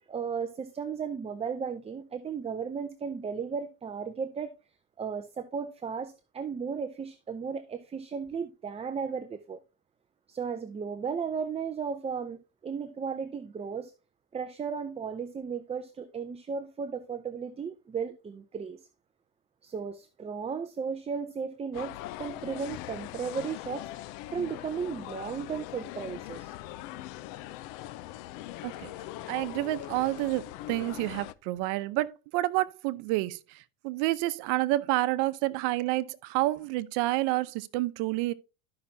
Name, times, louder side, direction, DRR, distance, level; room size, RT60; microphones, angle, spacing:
voice 1, 0.0-4.5 5.0-9.6 10.3-13.9 14.3-18.8 19.6-23.9 24.3-26.6, right 6 dB, 15° right, 0.5 m, -35 dB
sound 1, 21.7-31.3, left 15 dB, 75° left, 0.7 m, -41 dB
voice 2, 29.3-38.3, right 18 dB, 70° right, 0.8 m, -29 dB
13.5 x 5.8 x 2.7 m
cardioid pair, 130°, 43 cm